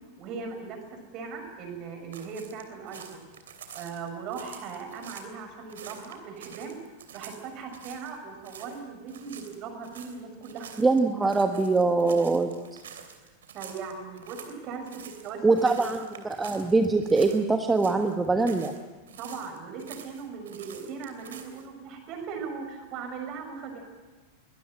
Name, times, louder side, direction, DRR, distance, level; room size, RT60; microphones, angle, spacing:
voice 1, 0.2-3.3 3.7-6.8 7.1-10.7 13.5-14.9 15.2-15.7 19.2-23.8, right 5 dB, 40° right, 5 dB, 6.3 m, -39 dB
sound 1, 2.1-5.3 5.7-8.2 8.4-8.8 9.1-17.4 17.7-18.8 19.1-21.7, right 8 dB, 60° right, 3.1 m, -47 dB
voice 2, 10.8-12.5 15.4-18.7, right 3 dB, 10° right, 5 dB, 1.4 m, -23 dB
22.5 x 20.0 x 9.0 m, 1.3 s
figure-of-eight pair, 90°, 0 cm